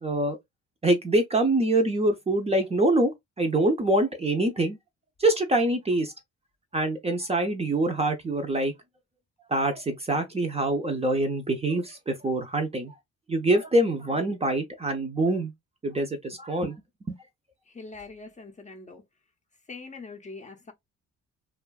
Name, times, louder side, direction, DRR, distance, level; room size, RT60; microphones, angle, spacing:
voice 1, 0.0-0.4 0.8-3.1 3.4-4.8 5.2-6.1 6.7-8.7 9.5-12.9 13.3-15.5 15.8-16.8, right 1 dB, 20° right, 0.5 m, -25 dB
voice 2, 17.7-19.0 19.7-20.7, left 3 dB, 25° left, 0.5 m, -42 dB
2.4 x 2.2 x 2.2 m
cardioid pair, 90°, 30 cm